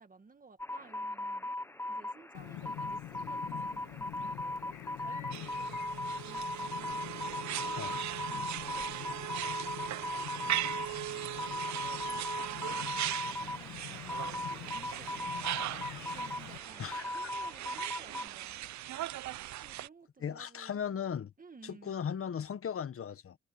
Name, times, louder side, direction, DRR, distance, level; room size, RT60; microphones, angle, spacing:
voice 1, 0.0-1.5 1.9-7.1 8.3-15.7 16.1-18.7 19.6-20.9 21.4-21.9, right 4 dB, 30° right, 1.9 m, -57 dB
sound 1, 0.6-18.3, left 1 dB, 10° left, 1.1 m, -39 dB
Chirp tweet, 2.3-16.6, left 14 dB, 90° left, 1.3 m, -46 dB
sound 2, 5.3-19.9, right 14 dB, 70° right, 0.7 m, -39 dB
voice 2, 16.8-17.2 20.2-21.3 21.6-23.4, left 8 dB, 45° left, 1.5 m, -37 dB
cardioid pair, 90°, 30 cm